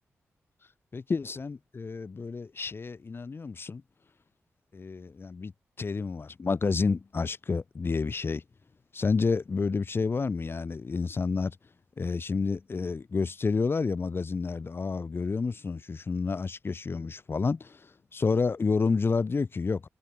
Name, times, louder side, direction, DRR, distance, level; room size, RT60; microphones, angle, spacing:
voice 1, 0.9-3.8 4.7-5.5 5.8-8.4 8.9-11.6 12.0-19.9, left 4 dB, 45° left, 2.6 m, -29 dB
cardioid pair, 65°, 5 cm